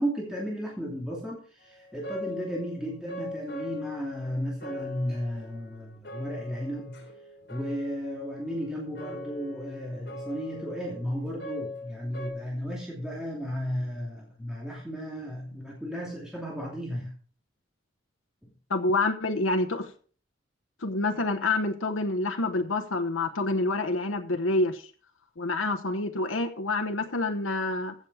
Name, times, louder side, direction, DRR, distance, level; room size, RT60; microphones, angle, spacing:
voice 1, 0.0-7.0 7.5-17.1 18.4-18.5, equal, 5° right, 2.7 m, -34 dB
sound 1, 1.6-12.3, left 2 dB, 55° left, 4.2 m, -41 dB
voice 2, 18.7-19.9 20.8-24.9 25.4-27.9, left 2 dB, 90° left, 1.1 m, -27 dB
15.0 x 7.2 x 4.8 m
head